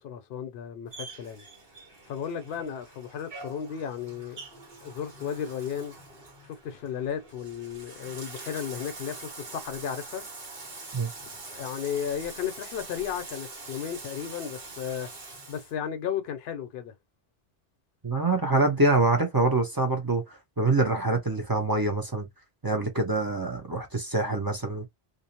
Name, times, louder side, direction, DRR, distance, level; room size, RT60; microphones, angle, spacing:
voice 1, 0.0-1.4 2.1-4.4 4.8-6.0 6.4-10.3 11.5-15.1 15.5-16.9, left 8 dB, 70° left, 0.8 m, -34 dB
Bathtub (filling or washing), 0.9-15.7, right 3 dB, 55° right, 1.2 m, -44 dB
voice 2, 18.0-22.3 22.6-24.9, right 2 dB, 25° right, 0.5 m, -25 dB
2.6 x 2.0 x 2.7 m
omnidirectional pair, 1.1 m